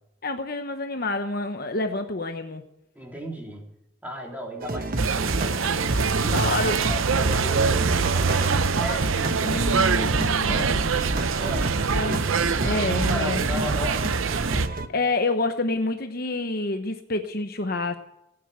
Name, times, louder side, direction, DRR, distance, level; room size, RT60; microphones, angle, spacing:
voice 1, 0.2-2.6 6.3-6.8 9.4-10.9 11.9-12.2 12.6-13.8 14.7-18.0, left 2 dB, 45° left, 6 dB, 1.0 m, -28 dB
voice 2, 2.9-3.7 4.0-5.7 6.1-6.5 6.8-12.4 12.7-15.0, equal, 10° right, -1 dB, 3.4 m, -36 dB
sound 1, 4.6-14.9, right 1 dB, 45° right, 1.0 m, -29 dB
sound 2, 5.0-14.7, right 5 dB, 75° right, 0.7 m, -24 dB
17.0 x 9.6 x 7.8 m, 0.86 s
head